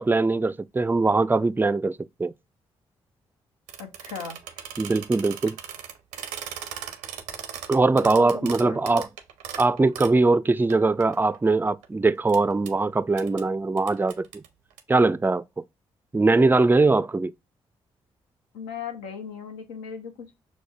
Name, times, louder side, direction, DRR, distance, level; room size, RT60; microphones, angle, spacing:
voice 1, 0.0-2.3 4.8-5.6 7.7-9.0 9.6-14.4 14.9-15.4 16.1-17.3, right 3 dB, 15° right, 0.3 m, -21 dB
sound 1, 3.7-10.2 10.7-10.8 11.0-11.8 12.3-12.4 12.7-12.8 13.2-13.4 13.8-14.8, right 9 dB, 90° right, 0.5 m, -38 dB
voice 2, 3.8-4.7 8.0-8.8 18.5-20.4, left 6 dB, 85° left, 0.7 m, -38 dB
6.1 x 2.1 x 2.2 m
hypercardioid pair, 40°, 13 cm